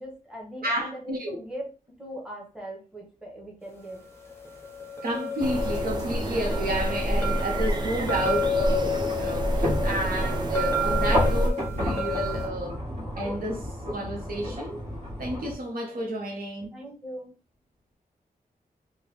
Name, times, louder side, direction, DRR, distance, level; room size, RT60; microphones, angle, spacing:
voice 1, 0.0-1.7 2.0-4.0 15.9-16.0 16.7-17.3, equal, 5° right, 1.0 m, -40 dB
voice 2, 0.6-1.4 5.0-12.8 13.2-14.8 15.2-16.7, right 1 dB, 75° right, 1.0 m, -31 dB
sound 1, 4.1-12.5, left 3 dB, 15° left, 0.6 m, -31 dB
sound 2, 5.4-11.5, right 1 dB, 30° right, 0.4 m, -28 dB
sound 3, 8.1-15.5, left 1 dB, 55° right, 1.5 m, -32 dB
3.6 x 2.3 x 3.2 m
wide cardioid pair, 175°, 15 cm